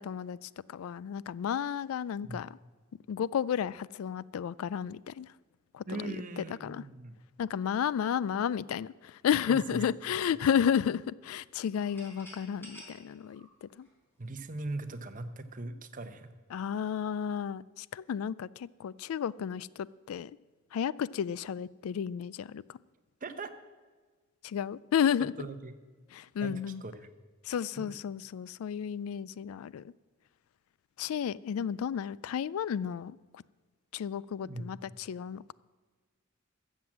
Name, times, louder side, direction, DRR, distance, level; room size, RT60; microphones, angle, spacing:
voice 1, 0.0-2.5 3.1-5.3 5.7-6.8 7.4-13.9 16.5-20.3 20.7-22.8 24.4-25.3 26.1-26.8 27.5-29.8 31.0-33.4 33.9-34.8 35.1-35.5, left 8 dB, 85° left, 21 dB, 0.3 m, -32 dB
voice 2, 5.9-7.2 9.5-9.8 10.1-10.2 14.2-16.3 23.2-23.5 25.4-25.8 26.4-27.1 27.8-27.9 34.4-34.7, right 2 dB, 40° right, 9 dB, 0.9 m, -40 dB
sound 1, 11.7-14.5, equal, 10° left, 4.0 m, -52 dB
14.0 x 7.5 x 7.4 m, 1.4 s
head